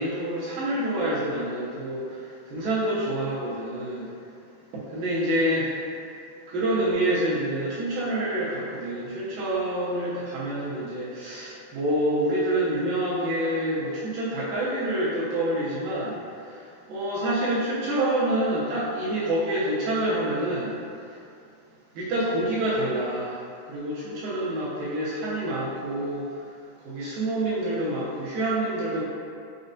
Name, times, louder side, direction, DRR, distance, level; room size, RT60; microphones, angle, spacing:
voice 1, 0.0-2.1 2.5-4.1 4.7-5.8 6.5-16.2 16.9-20.8 22.0-23.4 23.7-26.3 26.8-29.0, right 1 dB, 80° right, -8 dB, 2.2 m, -27 dB
6.3 x 2.1 x 2.6 m, 2.5 s
omnidirectional pair, 4.4 m